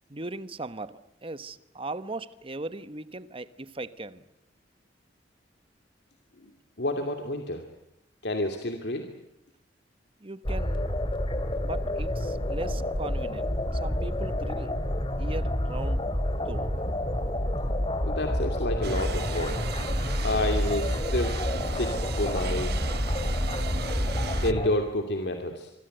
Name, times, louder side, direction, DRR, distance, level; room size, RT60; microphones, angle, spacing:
voice 1, 0.1-4.2 10.2-10.9 11.6-14.7 15.2-16.0 16.5-16.7, right 2 dB, 30° right, 14 dB, 1.2 m, -38 dB
voice 2, 6.8-7.6 8.2-9.1 17.8-19.6 20.2-22.9 23.2-23.4 23.7-25.7, left 1 dB, 65° left, 5 dB, 2.7 m, -30 dB
sound 1, 10.4-24.7, left 1 dB, 30° left, 3.0 m, -28 dB
sound 2, 18.8-24.5, right 5 dB, 65° right, 1.0 m, -37 dB
25.5 x 24.5 x 8.0 m, 0.84 s
head